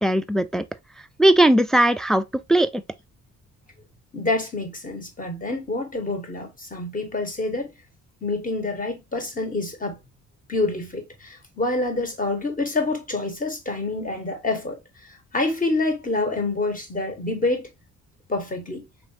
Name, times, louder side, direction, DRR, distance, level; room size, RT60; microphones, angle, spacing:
voice 1, 0.0-0.6 1.2-2.2 2.5-2.8, right 1 dB, ahead, 0.3 m, -18 dB
voice 2, 4.1-7.7 8.2-10.0 10.5-17.7 18.3-18.8, left 2 dB, 25° left, 1.6 m, -27 dB
4.2 x 3.0 x 2.8 m
cardioid pair, 90°, 30 cm